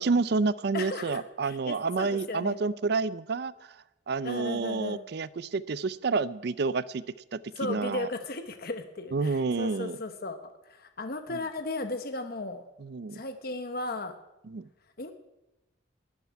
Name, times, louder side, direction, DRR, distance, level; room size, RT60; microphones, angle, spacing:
voice 1, 0.0-3.8 4.1-7.0 7.3-8.1 9.1-10.0 12.8-13.2 14.5-14.6, right 4 dB, 55° right, 18 dB, 0.4 m, -29 dB
voice 2, 0.7-2.6 4.2-5.0 7.5-12.7 13.1-14.2 15.0-15.1, left 2 dB, 50° left, 7 dB, 1.0 m, -36 dB
13.0 x 9.3 x 9.5 m, 0.96 s
head